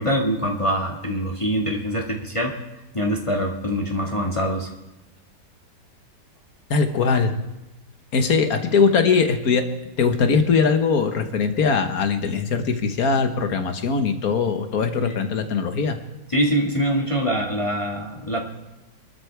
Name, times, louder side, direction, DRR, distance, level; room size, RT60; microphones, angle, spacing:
voice 1, 0.0-2.6 2.9-4.7 15.0-15.2 16.3-18.4, equal, 20° left, -1 dB, 1.6 m, -24 dB
voice 2, 6.7-7.3 8.1-9.7 10.0-16.0, left 5 dB, 60° left, 7 dB, 1.7 m, -21 dB
24.0 x 12.5 x 3.4 m, 0.98 s
omnidirectional pair, 1.9 m